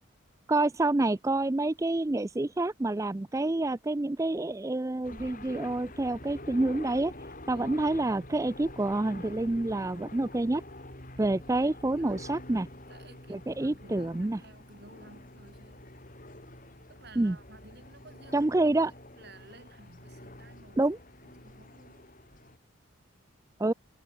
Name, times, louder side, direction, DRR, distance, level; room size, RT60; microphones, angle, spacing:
voice 1, 0.5-7.1 7.5-10.6 11.2-12.7 13.3-14.4 17.2-17.4 18.3-18.9 20.8-21.0 23.6-23.7, right 2 dB, 15° right, 0.4 m, -28 dB
sound 1, 5.0-22.6, left 1 dB, 40° left, 5.9 m, -47 dB
voice 2, 11.8-12.2 12.9-15.9 16.9-18.7 19.1-20.8 21.4-22.1, right 2 dB, 50° right, 6.0 m, -54 dB
head